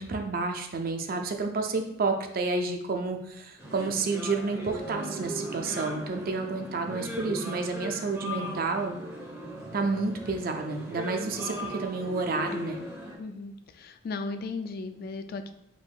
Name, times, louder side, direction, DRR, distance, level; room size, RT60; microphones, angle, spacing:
voice 1, 0.0-9.0 9.7-12.9, right 3 dB, 50° right, 5 dB, 0.5 m, -30 dB
sound 1, 3.6-13.1, equal, 15° right, 1.1 m, -38 dB
voice 2, 13.2-15.5, left 3 dB, 50° left, 8 dB, 0.3 m, -36 dB
4.9 x 3.6 x 2.4 m, 0.80 s
head